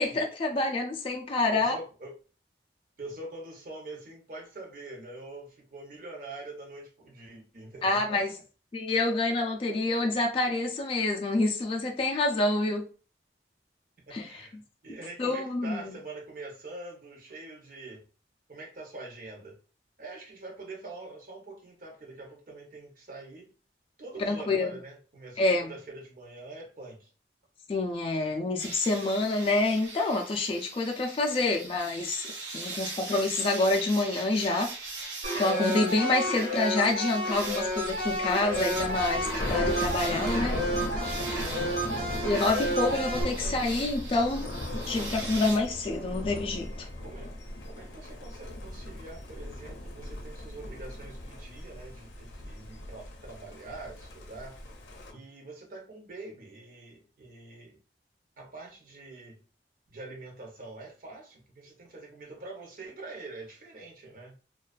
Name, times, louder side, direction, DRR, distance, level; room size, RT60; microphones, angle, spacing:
voice 1, 0.0-1.8 7.8-8.3 8.7-12.8 14.1-14.3 15.2-15.9 24.2-24.7 25.4-25.7 27.7-34.7 35.4-40.5 42.2-44.5 44.9-46.9 55.1-55.2, left 2 dB, 30° left, 1 dB, 0.3 m, -27 dB
voice 2, 1.5-2.1 3.0-8.3 14.1-14.6 14.8-18.0 18.5-19.6 20.0-23.5 24.0-27.1 41.6-42.1 43.1-43.7 47.0-47.3 47.6-54.6 55.1-57.8 58.4-59.4 59.9-64.3, right 2 dB, 50° right, 0 dB, 0.7 m, -44 dB
sound 1, 28.6-45.6, right 3 dB, 85° right, 0.6 m, -41 dB
sound 2, 35.2-43.2, equal, 65° right, 1.1 m, -31 dB
Thunder, 37.3-55.1, left 1 dB, 85° left, 0.5 m, -38 dB
2.4 x 2.2 x 2.3 m, 0.36 s
head